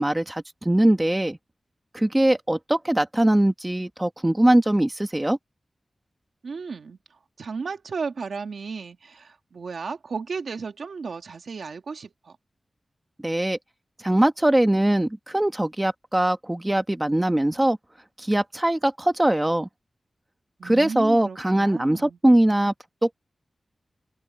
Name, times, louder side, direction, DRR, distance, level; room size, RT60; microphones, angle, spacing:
voice 1, 0.0-1.4 1.9-5.4 13.2-13.6 14.0-17.8 18.2-19.7 20.6-22.7 23.0-23.2, right 1 dB, 15° right, 1.7 m, -21 dB
voice 2, 6.4-12.4 20.6-22.2, right 5 dB, 85° right, 1.6 m, -34 dB
open air
wide cardioid pair, 95°, 0 cm